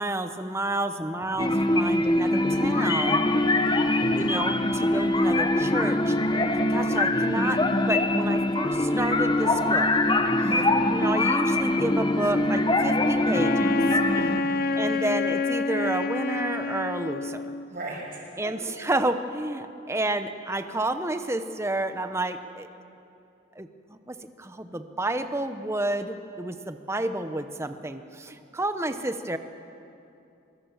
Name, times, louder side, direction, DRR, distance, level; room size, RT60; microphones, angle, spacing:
voice 1, 0.0-3.3 4.1-6.2 6.5-9.9 10.9-14.0 14.7-17.5 18.4-22.7 23.6-29.4, right 1 dB, 15° right, 9 dB, 0.8 m, -30 dB
voice 2, 0.9-1.5 3.8-4.1 10.4-10.8 14.0-14.7 17.7-18.5, right 1 dB, 45° right, -3 dB, 6.7 m, -39 dB
sound 1, 1.4-14.4, left 1 dB, 20° left, 1.0 m, -23 dB
Wind instrument woodwind instrument, 13.3-17.7, left 3 dB, 45° left, 0.6 m, -28 dB
25.0 x 22.0 x 7.2 m, 2.7 s
head